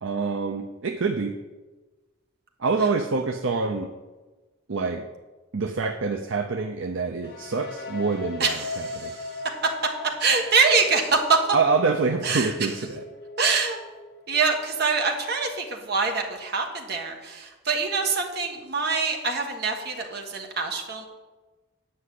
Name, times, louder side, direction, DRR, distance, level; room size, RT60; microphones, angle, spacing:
voice 1, 0.0-1.4 2.6-3.9 4.7-5.1 5.5-9.1 11.5-13.0, right 4 dB, 65° right, 5 dB, 0.6 m, -26 dB
sound 1, 7.2-15.0, left 3 dB, 45° left, 2.3 m, -39 dB
voice 2, 8.4-9.4 10.2-11.4 12.2-12.7 13.4-13.8 14.3-21.1, right 4 dB, 50° right, 2 dB, 1.5 m, -25 dB
9.7 x 5.5 x 8.3 m, 1.2 s
head